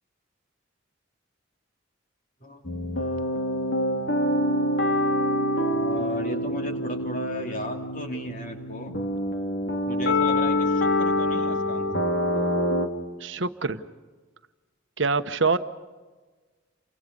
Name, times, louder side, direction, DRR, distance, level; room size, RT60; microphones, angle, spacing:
sound 1, 2.7-12.9, left 1 dB, 70° left, 2.7 m, -26 dB
voice 1, 5.7-8.9 9.6-12.0, left 2 dB, 40° left, 3 dB, 3.1 m, -35 dB
voice 2, 13.2-13.8 15.0-15.6, right 4 dB, 70° right, 10 dB, 1.1 m, -25 dB
29.5 x 25.5 x 5.4 m, 1.3 s
head